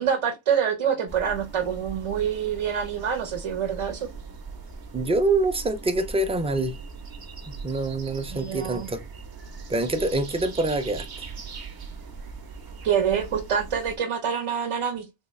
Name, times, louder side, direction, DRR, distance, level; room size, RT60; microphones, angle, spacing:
voice 1, 0.0-4.1 8.3-8.9 12.8-15.1, right 8 dB, 85° right, 0.9 m, -26 dB
sound 1, 1.1-14.0, right 4 dB, 45° right, 0.7 m, -40 dB
voice 2, 4.9-6.8 7.5-9.0 9.7-11.3, right 2 dB, 15° right, 0.3 m, -25 dB
3.6 x 2.3 x 3.1 m
wide cardioid pair, 160°, 49 cm